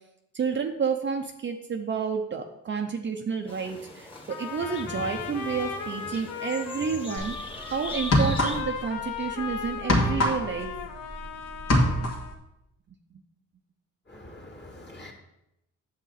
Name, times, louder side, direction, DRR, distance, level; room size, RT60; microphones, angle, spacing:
voice 1, 0.3-10.7, right 6 dB, 40° right, 3 dB, 0.7 m, -30 dB
sound 1, 3.5-8.6, left 2 dB, 15° left, 1.7 m, -40 dB
Trumpet, 4.3-12.4, left 6 dB, 85° left, 0.8 m, -37 dB
sound 2, 7.2-7.4 8.0-8.9 9.1-11.3 11.5-12.3, left 1 dB, 55° left, 2.2 m, -23 dB
voice 2, 14.1-15.1, left 1 dB, 35° left, -1 dB, 2.4 m, -45 dB
8.3 x 7.0 x 4.1 m, 0.85 s
cardioid pair, 90°, 30 cm